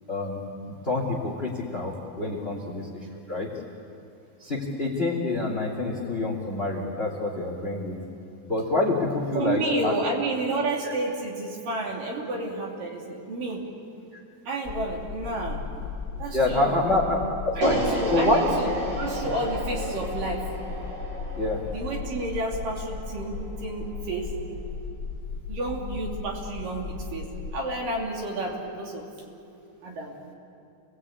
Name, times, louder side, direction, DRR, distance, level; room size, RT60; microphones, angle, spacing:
voice 1, 0.1-0.4 0.8-2.9 3.3-3.5 4.4-8.0 8.5-9.9 16.3-17.8 18.1-18.4 21.4-21.6, left 2 dB, 15° left, 0 dB, 2.5 m, -26 dB
voice 2, 2.3-2.7 9.3-13.7 14.5-15.6 16.2-16.8 17.6-20.5 21.6-24.4 25.5-29.1 29.8-30.2, right 2 dB, 60° right, -1 dB, 4.4 m, -31 dB
sound 1, 14.6-27.6, left 5 dB, 40° left, 2.0 m, -36 dB
sound 2, 17.6-23.8, right 1 dB, 40° right, 5.3 m, -32 dB
29.0 x 20.0 x 8.6 m, 2.6 s
omnidirectional pair, 4.5 m